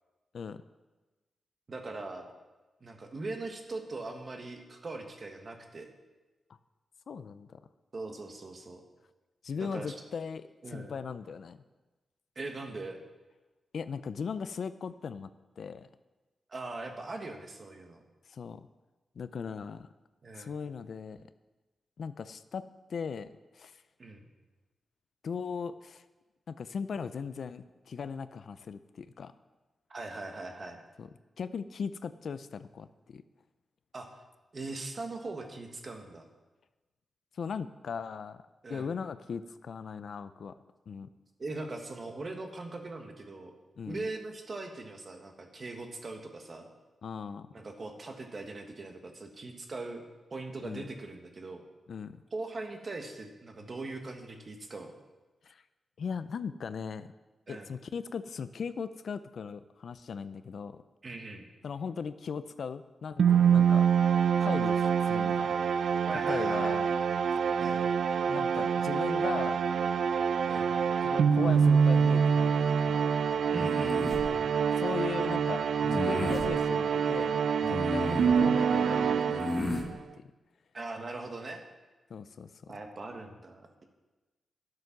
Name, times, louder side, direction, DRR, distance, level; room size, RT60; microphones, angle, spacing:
voice 1, 1.7-2.3 2.8-5.9 7.9-8.8 9.5-9.9 10.6-11.0 12.3-13.0 16.5-18.0 20.2-20.5 24.0-24.2 29.9-30.8 33.9-34.1 34.5-36.3 38.6-38.9 41.4-43.5 43.9-46.7 47.5-50.0 50.3-51.6 52.3-54.9 57.5-57.7 61.0-61.5 66.1-66.8 67.6-67.8 70.5-70.7 73.5-74.6 80.7-81.6 82.7-83.8, right 2 dB, 40° right, 4 dB, 1.5 m, -40 dB
voice 2, 7.1-7.6 9.4-11.6 13.7-15.3 15.6-15.9 18.3-18.7 19.2-19.9 20.4-21.3 22.0-22.6 22.9-23.8 25.2-26.0 26.5-29.3 31.0-31.1 31.4-33.2 37.4-38.4 38.7-40.5 40.9-41.1 43.8-44.1 47.0-47.5 50.6-50.9 51.9-52.2 55.4-55.6 56.0-57.1 57.5-60.8 61.6-63.9 64.4-65.6 66.3-66.9 68.3-69.6 71.0-73.1 74.8-77.4 77.7-80.3 82.1-82.7, left 6 dB, 65° left, 13 dB, 0.5 m, -38 dB
sound 1, 63.2-79.9, right 7 dB, 75° right, 0.4 m, -26 dB
sound 2, 73.5-74.2 75.8-76.5 77.6-78.3 79.3-79.9, left 2 dB, 25° left, 1.5 m, -33 dB
12.0 x 7.8 x 5.9 m, 1.2 s
wide cardioid pair, 120°, 0 cm